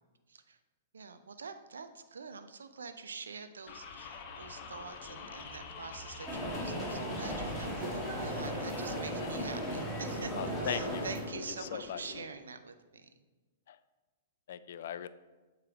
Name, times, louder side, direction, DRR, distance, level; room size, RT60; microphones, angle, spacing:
voice 1, 0.3-0.6 0.9-10.3 10.6-13.1, right 5 dB, 75° right, 9 dB, 0.4 m, -46 dB
sound 1, 3.7-12.2, left 4 dB, 40° left, 0.8 m, -45 dB
sound 2, 6.3-11.3, right 1 dB, 10° right, 2.0 m, -36 dB
voice 2, 10.4-11.1 11.7-12.0 13.7-13.8 14.5-15.1, left 9 dB, 60° left, 13 dB, 0.3 m, -38 dB
7.4 x 3.1 x 5.0 m, 1.2 s
figure-of-eight pair, 110°, 0 cm